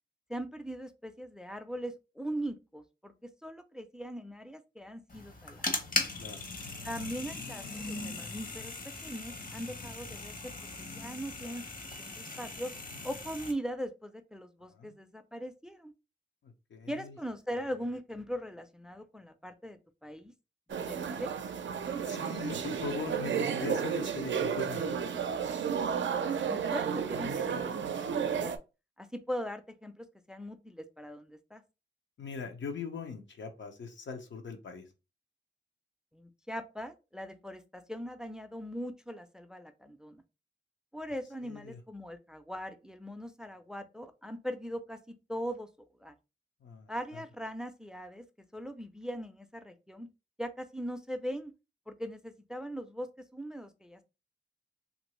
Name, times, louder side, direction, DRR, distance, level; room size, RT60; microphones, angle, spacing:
voice 1, 0.3-3.1 3.4-5.6 6.8-8.7 9.0-10.4 10.8-11.7 12.0-12.7 13.0-15.9 16.9-20.3 20.7-21.4 26.5-28.5 29.0-31.6 36.1-40.2 40.9-45.7 46.0-46.1 46.9-48.2 48.5-50.1 50.4-51.5 51.9-53.1 53.3-54.0, equal, 5° right, 8 dB, 0.4 m, -40 dB
sound 1, 5.1-13.5, left 3 dB, 50° left, 0.8 m, -39 dB
voice 2, 16.4-17.2 22.0-25.3 32.2-34.8 41.4-41.8 46.6-47.2, left 4 dB, 85° left, 5 dB, 0.7 m, -41 dB
sound 2, 20.7-28.6, right 7 dB, 85° right, 0.4 m, -32 dB
2.8 x 2.5 x 3.0 m, 0.29 s
wide cardioid pair, 80°, 19 cm